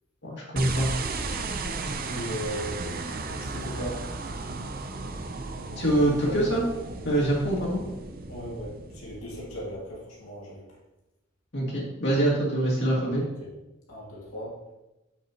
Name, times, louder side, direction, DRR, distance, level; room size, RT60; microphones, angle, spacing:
voice 1, 0.2-0.9 5.8-6.6 7.0-7.8 11.5-13.2, right 1 dB, 55° left, -4 dB, 2.1 m, -24 dB
sound 1, 0.6-9.9, right 3 dB, 45° right, 0.6 m, -35 dB
voice 2, 2.1-4.0 6.1-6.6 7.6-7.8 8.3-10.7 13.2-13.5 13.9-14.5, equal, 90° left, -6 dB, 2.3 m, -38 dB
7.6 x 7.3 x 2.9 m, 0.99 s
head